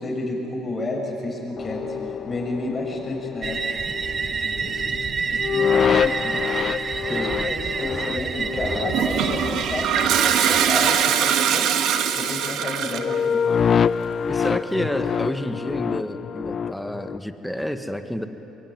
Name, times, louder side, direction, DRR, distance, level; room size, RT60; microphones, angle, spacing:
voice 1, 0.0-1.9 2.2-3.6 4.3-4.8 5.3-6.4 6.8-11.7 12.1-13.6, left 2 dB, 30° left, -1 dB, 7.5 m, -31 dB
sound 1, 1.6-11.0 11.3-11.7 12.1-12.5 12.9-17.2, left 7 dB, 45° left, 0.5 m, -27 dB
sound 2, 3.4-11.1, right 5 dB, 35° right, 0.7 m, -28 dB
Toilet flush, 8.9-13.2, right 9 dB, 70° right, 1.6 m, -22 dB
voice 2, 14.3-18.3, equal, ahead, 8 dB, 1.7 m, -29 dB
23.5 x 22.5 x 9.5 m, 3.0 s
supercardioid pair, 90°, 0 cm